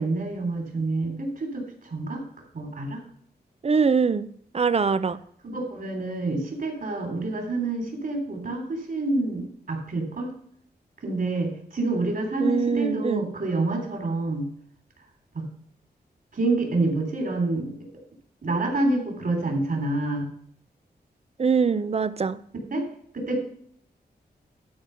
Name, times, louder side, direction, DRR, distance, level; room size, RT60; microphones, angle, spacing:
voice 1, 0.0-2.2 2.5-3.0 5.4-10.3 11.0-14.5 15.3-15.4 16.3-17.7 18.4-20.3 22.7-22.8 23.1-23.4, right 2 dB, 60° right, 3.2 m, -27 dB
voice 2, 3.6-5.2 12.4-13.3 21.4-22.4, right 5 dB, 35° right, 0.5 m, -23 dB
12.0 x 4.6 x 5.6 m
wide cardioid pair, 105°, 17 cm